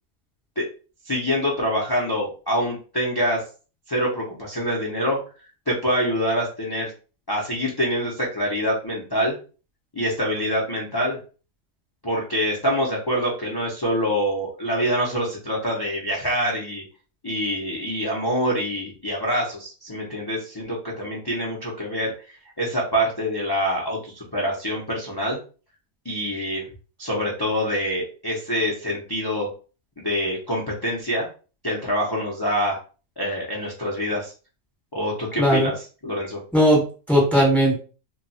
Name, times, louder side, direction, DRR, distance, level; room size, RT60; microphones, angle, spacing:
voice 1, 1.1-3.4 3.9-5.2 5.7-6.9 7.3-9.4 9.9-11.2 12.0-16.8 17.2-25.4 26.0-26.6 27.0-29.5 30.0-31.3 31.6-32.8 33.2-34.3 34.9-35.7 36.0-36.4, equal, 40° left, -4 dB, 0.3 m, -25 dB
voice 2, 35.4-35.7 36.5-37.8, equal, ahead, -3 dB, 1.1 m, -18 dB
2.3 x 2.3 x 4.0 m, 0.36 s
omnidirectional pair, 1.6 m